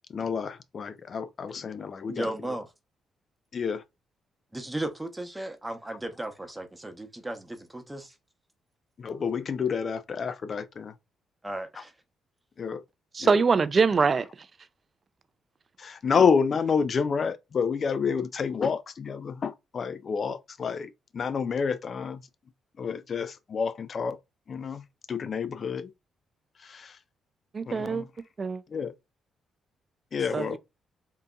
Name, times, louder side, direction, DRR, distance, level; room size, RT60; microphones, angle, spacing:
voice 1, 0.1-2.6 3.5-3.8 9.0-10.9 12.6-12.8 13.2-13.4 15.8-22.2 22.8-24.2 24.5-25.9 26.6-27.0 27.7-28.1 28.7-28.9 30.1-30.6, left 6 dB, 50° left, 0.4 m, -29 dB
voice 2, 2.1-2.6 4.5-8.1 11.4-11.9, right 1 dB, 15° right, 0.8 m, -35 dB
voice 3, 13.1-14.3 27.5-28.0 28.4-28.6 30.3-30.6, right 5 dB, 45° right, 0.3 m, -23 dB
3.7 x 2.6 x 2.3 m
supercardioid pair, 55°, 0 cm